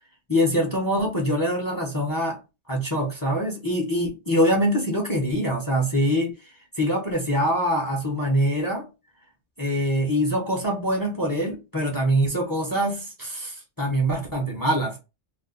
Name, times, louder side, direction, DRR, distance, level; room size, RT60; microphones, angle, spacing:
voice 1, 0.3-2.4 2.7-6.3 6.8-8.9 9.6-15.0, equal, 20° left, 0.7 m, -24 dB
2.4 x 2.4 x 3.7 m
omnidirectional pair, 1.1 m